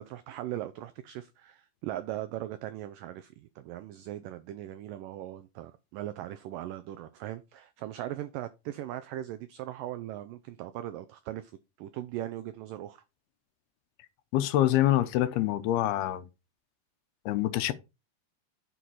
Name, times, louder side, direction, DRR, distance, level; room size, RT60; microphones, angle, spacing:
voice 1, 0.0-11.5 11.8-13.0, right 13 dB, 85° right, 1.9 m, -39 dB
voice 2, 14.3-16.2 17.3-17.7, left 13 dB, 80° left, 2.7 m, -25 dB
10.0 x 5.4 x 4.7 m
omnidirectional pair, 4.7 m